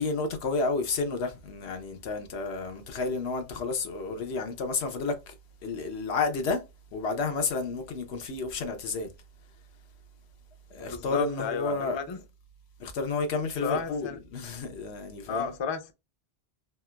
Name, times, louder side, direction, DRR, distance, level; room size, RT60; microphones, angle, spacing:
voice 1, 0.0-5.3 5.6-6.6 6.9-9.1 10.7-12.0 12.8-15.5, left 3 dB, 90° left, 1.0 m, -31 dB
voice 2, 10.8-12.2 13.6-14.2 15.3-15.9, left 6 dB, 45° left, 0.4 m, -32 dB
3.4 x 2.8 x 2.2 m
omnidirectional pair, 1.1 m